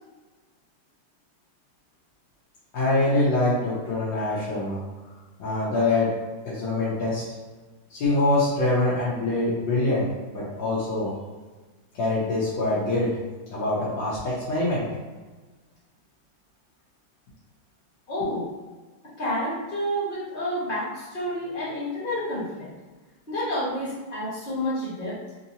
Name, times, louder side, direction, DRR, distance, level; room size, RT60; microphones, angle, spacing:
voice 1, 2.7-4.8 5.4-6.1 6.4-7.2 7.9-10.0 10.3-11.1 12.0-13.2 13.5-14.9, left 2 dB, 90° left, -9 dB, 1.6 m, -24 dB
voice 2, 18.1-18.4 19.2-22.7 23.3-25.1, equal, 30° left, -8 dB, 1.3 m, -29 dB
3.7 x 2.8 x 2.8 m, 1.3 s
omnidirectional pair, 2.0 m